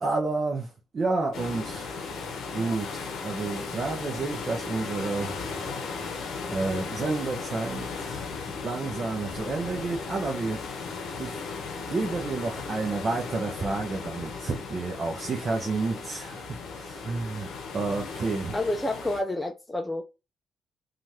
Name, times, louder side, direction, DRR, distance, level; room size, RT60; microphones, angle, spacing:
voice 1, 0.0-2.1 2.5-5.4 6.5-10.6 11.2-11.5 11.9-18.6, right 3 dB, 45° right, 0.7 m, -30 dB
sound 1, 1.3-19.2, left 4 dB, 75° left, 0.7 m, -36 dB
voice 2, 18.5-20.0, left 1 dB, 15° left, 0.4 m, -29 dB
3.0 x 2.4 x 2.7 m
supercardioid pair, 55°, 0 cm